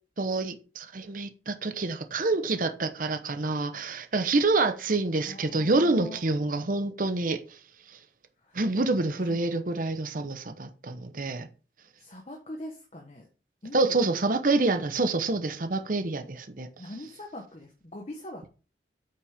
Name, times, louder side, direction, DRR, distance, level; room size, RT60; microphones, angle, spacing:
voice 1, 0.2-7.6 7.9-8.0 8.5-11.5 13.7-16.7, right 3 dB, 50° right, 0.9 m, -27 dB
voice 2, 5.2-6.2 8.4-8.6 9.2-9.5 9.7-9.8 10.1-10.4 12.0-13.3 13.6-14.0 16.8-18.5, left 1 dB, 35° left, 1.2 m, -42 dB
8.7 x 5.7 x 3.5 m
head